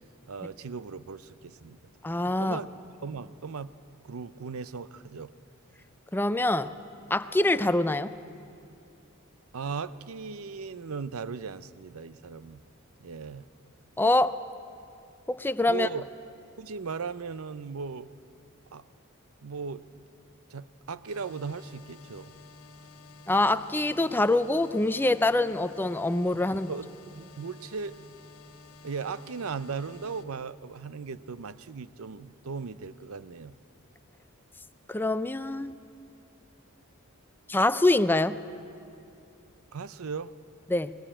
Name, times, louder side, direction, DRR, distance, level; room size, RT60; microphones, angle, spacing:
voice 1, 0.3-1.8 2.4-2.7 3.0-3.7 4.0-5.3 9.5-12.6 13.0-13.5 15.7-16.0 16.6-18.1 18.7-18.8 19.4-20.0 20.5-22.3 26.3-28.1 28.8-33.5 39.7-40.3, right 5 dB, 70° right, 15 dB, 0.6 m, -37 dB
voice 2, 2.0-2.6 6.1-6.7 7.1-8.1 14.0-14.3 15.3-15.9 23.3-26.7 34.9-35.7 37.5-38.4 40.7-40.9, left 2 dB, 10° left, 12 dB, 0.5 m, -25 dB
sound 1, 21.1-30.2, left 3 dB, 75° left, 1.6 m, -51 dB
20.5 x 18.5 x 8.9 m, 2.6 s
head